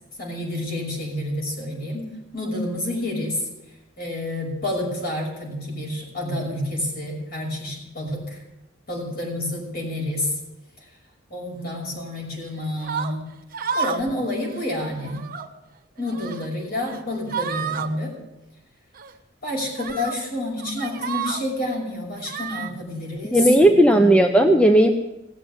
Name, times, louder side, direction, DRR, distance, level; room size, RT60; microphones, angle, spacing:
voice 1, 0.2-3.4 4.0-8.4 8.9-10.3 11.3-13.2 13.7-15.2 16.0-18.1 19.4-24.4, left 1 dB, 50° left, -1 dB, 5.9 m, -29 dB
sound 1, 12.8-13.1 13.5-14.1 14.4-14.6 15.0-15.5 16.0-16.5 16.8-17.0 17.3-17.9 18.9-19.1 19.8-20.1 20.6-21.4 22.2-22.7, right 6 dB, 45° right, 1.1 m, -30 dB
voice 2, 23.3-24.9, right 1 dB, 5° left, 4 dB, 0.8 m, -15 dB
17.5 x 7.6 x 8.9 m, 0.96 s
head